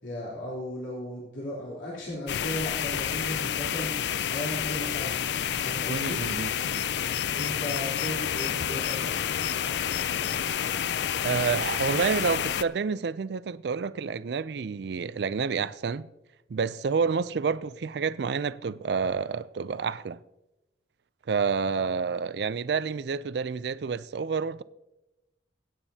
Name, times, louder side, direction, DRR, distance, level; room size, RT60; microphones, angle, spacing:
voice 1, 0.0-3.9 4.3-5.2 5.6-6.2 7.3-9.3, equal, 90° left, 3.4 m, -36 dB
sound 1, 2.3-12.6, left 9 dB, 65° left, 0.4 m, -29 dB
voice 2, 5.9-6.9 11.2-16.1 16.5-20.2 21.3-24.6, right 5 dB, 60° right, 0.4 m, -29 dB
23.5 x 9.0 x 2.8 m
head